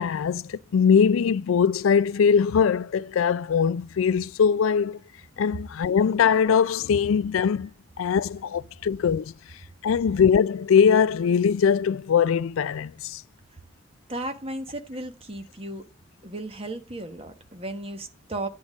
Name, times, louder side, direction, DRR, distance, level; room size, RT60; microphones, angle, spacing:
voice 1, 0.0-5.0 5.4-7.7 8.0-9.3 9.8-13.2, left 7 dB, 90° left, 0.4 m, -21 dB
voice 2, 14.1-15.8 16.2-18.5, right 1 dB, 30° right, 1.1 m, -35 dB
9.6 x 3.7 x 6.3 m
head